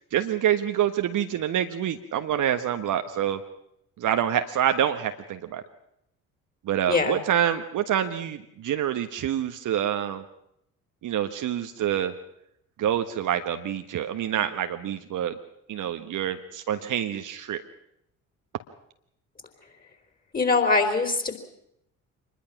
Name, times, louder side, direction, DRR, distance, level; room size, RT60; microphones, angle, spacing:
voice 1, 0.1-3.4 4.0-5.6 6.6-10.2 11.0-12.1 12.8-15.4 15.7-17.6, right 10 dB, 45° right, 7 dB, 1.4 m, -26 dB
voice 2, 20.3-21.4, left 3 dB, 20° left, 7 dB, 4.2 m, -22 dB
25.5 x 20.5 x 6.0 m, 0.76 s
figure-of-eight pair, 50°, 43 cm